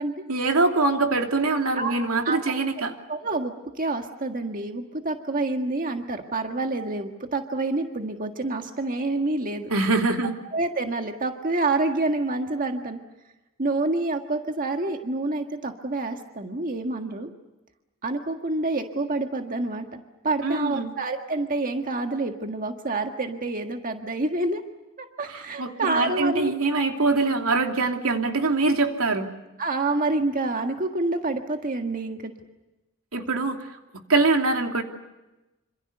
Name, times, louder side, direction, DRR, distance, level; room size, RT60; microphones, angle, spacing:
voice 1, 0.3-2.9 9.7-10.3 20.4-20.9 25.3-29.3 33.1-33.7 34.1-34.8, right 3 dB, 85° right, 4 dB, 2.9 m, -23 dB
voice 2, 3.1-9.7 10.5-13.0 13.6-17.3 18.0-20.0 20.2-24.6 25.0-26.5 29.6-32.3, right 2 dB, 40° right, 4 dB, 1.7 m, -27 dB
27.0 x 26.5 x 6.8 m, 1.0 s
head